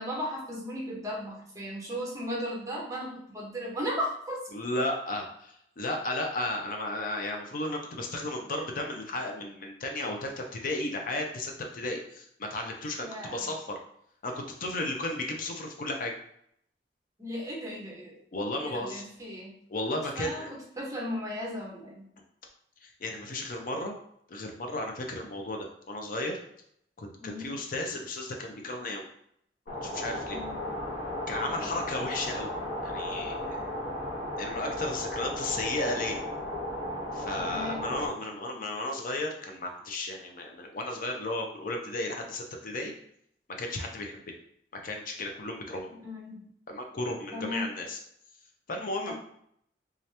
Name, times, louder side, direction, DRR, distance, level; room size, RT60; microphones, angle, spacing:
voice 1, 0.0-4.4 13.0-13.4 17.2-18.2 18.6-19.5 20.2-22.1 27.2-27.5 30.3-30.7 31.4-31.7 37.3-37.9 46.0-46.4 47.3-47.6 49.1-49.2, equal, 20° right, -3 dB, 1.0 m, -36 dB
voice 2, 4.5-13.8 14.2-16.1 18.3-19.0 19.7-20.5 22.8-23.9 24.3-26.4 27.0-29.1 29.8-30.4 31.3-32.5 32.8-33.7 34.4-36.2 37.1-42.9 43.6-44.3 44.7-45.9 46.7-48.0 48.7-49.1, left 2 dB, 50° left, 3 dB, 0.6 m, -34 dB
sound 1, 29.7-38.1, left 1 dB, 70° left, 1.1 m, -35 dB
3.6 x 2.8 x 3.3 m, 0.70 s
head